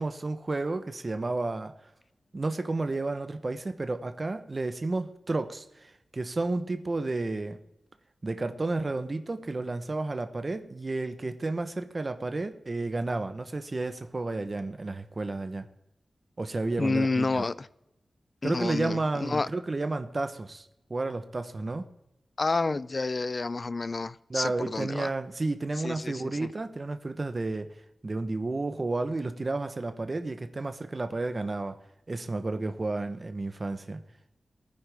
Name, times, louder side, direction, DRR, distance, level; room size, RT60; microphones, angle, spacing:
voice 1, 0.0-1.7 2.3-7.6 8.2-15.7 16.4-17.4 18.4-21.9 24.3-27.7 28.0-31.8 32.1-34.0, right 2 dB, 30° right, 0.9 m, -31 dB
voice 2, 16.8-17.7 18.4-19.5 22.4-25.1 25.8-26.5, left 3 dB, 35° left, 0.4 m, -29 dB
19.5 x 9.5 x 3.5 m
wide cardioid pair, 150°, 0 cm